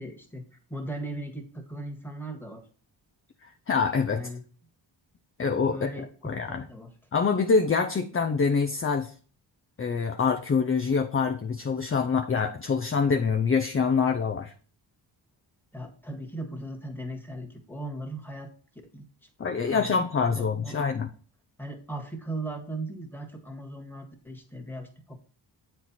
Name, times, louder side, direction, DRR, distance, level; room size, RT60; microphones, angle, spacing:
voice 1, 0.0-2.7 4.1-4.4 5.7-6.9 15.7-18.5 18.9-19.3 19.7-20.8 21.6-25.2, right 1 dB, 5° left, 4 dB, 1.7 m, -38 dB
voice 2, 3.4-4.2 5.4-5.9 6.2-6.6 7.1-9.1 9.8-14.5 19.4-21.1, left 5 dB, 30° left, 5 dB, 0.7 m, -25 dB
7.8 x 4.5 x 4.2 m, 0.41 s
cardioid pair, 65°, 44 cm